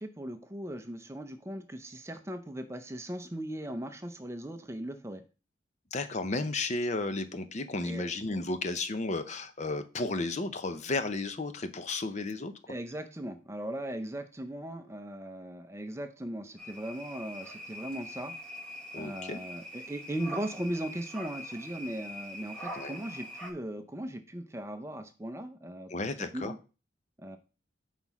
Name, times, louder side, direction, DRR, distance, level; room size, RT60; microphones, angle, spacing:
voice 1, 0.0-5.2 7.8-8.1 12.7-18.3 18.9-25.9 26.2-26.6 27.2-27.4, right 1 dB, 15° right, 8 dB, 0.6 m, -38 dB
voice 2, 5.9-12.5 18.9-19.4 22.8-23.0 25.9-26.5, left 2 dB, 40° left, 10 dB, 0.6 m, -33 dB
sound 1, 16.6-23.5, equal, 5° left, 1.3 m, -43 dB
5.9 x 4.1 x 5.9 m, 0.34 s
head